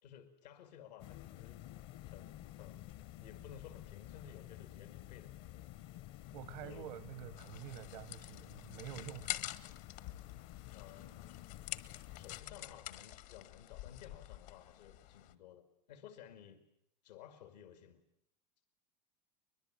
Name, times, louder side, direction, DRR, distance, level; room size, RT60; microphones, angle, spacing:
voice 1, 0.0-1.6 2.0-2.8 3.2-5.3 6.6-6.8 10.7-11.3 12.1-16.6 17.0-18.0, left 9 dB, 90° left, 2.2 m, -55 dB
sound 1, 1.0-12.4, left 14 dB, 55° left, 0.9 m, -51 dB
voice 2, 6.3-9.4, right 14 dB, 80° right, 0.9 m, -48 dB
sound 2, 7.4-15.3, left 15 dB, 75° left, 1.6 m, -47 dB
23.0 x 21.5 x 9.1 m
supercardioid pair, 115°, 21 cm